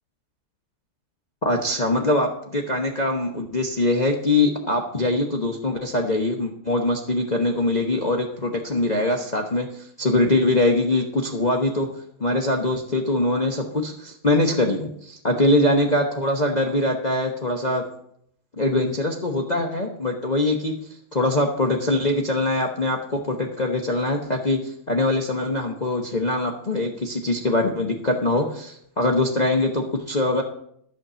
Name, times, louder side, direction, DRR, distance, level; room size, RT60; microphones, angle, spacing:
voice 1, 1.4-11.9 12.2-17.8 18.6-20.8 21.1-30.4, left 2 dB, 35° left, 1 dB, 0.7 m, -23 dB
11.5 x 5.9 x 6.8 m, 0.68 s
omnidirectional pair, 2.1 m